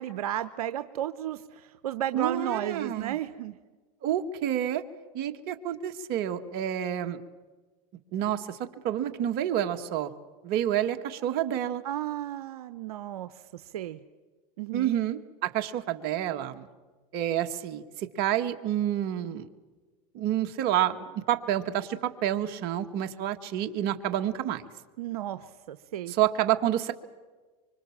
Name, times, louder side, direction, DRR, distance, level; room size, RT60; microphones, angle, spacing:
voice 1, 0.0-3.5 11.8-14.0 14.6-14.9 25.0-26.1, right 12 dB, 85° right, 12 dB, 0.9 m, -33 dB
voice 2, 2.1-3.2 4.0-4.8 5.1-7.2 8.1-10.1 10.4-11.8 14.7-16.7 17.1-19.5 20.1-24.6 26.1-26.9, right 11 dB, 55° right, 8 dB, 1.9 m, -29 dB
25.5 x 25.0 x 7.4 m, 1.3 s
supercardioid pair, 110°, 19 cm